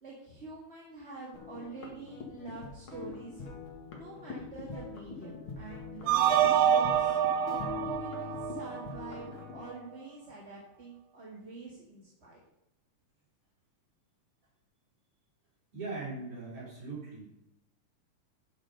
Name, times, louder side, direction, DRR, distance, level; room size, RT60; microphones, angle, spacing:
voice 1, 0.0-3.4 3.9-7.2 7.5-12.4, right 3 dB, 25° right, -4 dB, 1.6 m, -46 dB
sound 1, 1.3-9.6, left 4 dB, 45° left, 2.3 m, -43 dB
sound 2, 6.1-9.2, right 9 dB, 80° right, 2.2 m, -27 dB
voice 2, 15.7-17.3, right 3 dB, 50° right, -6 dB, 5.1 m, -40 dB
12.0 x 6.2 x 5.1 m, 0.87 s
omnidirectional pair, 3.6 m